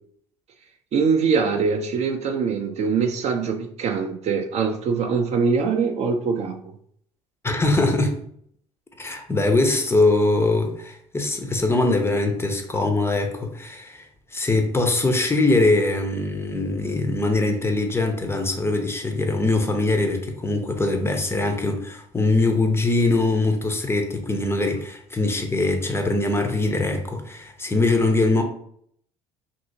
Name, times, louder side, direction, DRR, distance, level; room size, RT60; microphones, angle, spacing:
voice 1, 0.9-6.6, right 5 dB, 40° right, 5 dB, 0.4 m, -23 dB
voice 2, 7.4-8.2 9.0-14.0 14.3-28.4, left 2 dB, 15° left, 4 dB, 0.5 m, -22 dB
2.7 x 2.6 x 2.6 m, 0.66 s
figure-of-eight pair, 60°, 17 cm